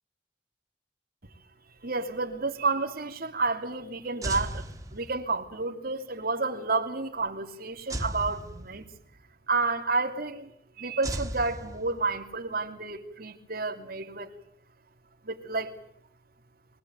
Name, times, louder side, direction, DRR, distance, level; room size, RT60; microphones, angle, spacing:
voice 1, 1.7-4.6 4.9-8.9 9.5-10.5 10.8-14.3 15.2-15.7, right 3 dB, 55° right, 2.9 m, -30 dB
sound 1, 4.2-5.5 7.9-9.2 11.0-12.3, right 1 dB, 20° right, 1.6 m, -36 dB
24.5 x 18.0 x 9.3 m
head